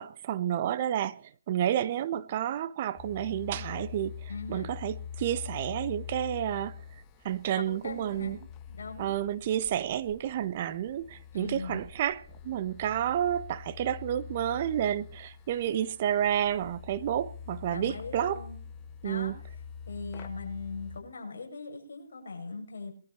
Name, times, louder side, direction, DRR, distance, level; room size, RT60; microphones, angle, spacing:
voice 1, 0.0-6.8 7.2-8.4 9.0-18.4 19.0-19.3, right 10 dB, 40° right, 1.2 m, -30 dB
sound 1, 3.0-21.0, left 7 dB, 20° left, 1.4 m, -45 dB
voice 2, 4.3-4.7 7.5-8.4 8.7-9.1 11.3-11.8 17.7-18.6 19.0-19.3 19.8-22.9, left 4 dB, 65° left, 7.3 m, -40 dB
22.5 x 12.5 x 4.4 m
figure-of-eight pair, 145°, 0 cm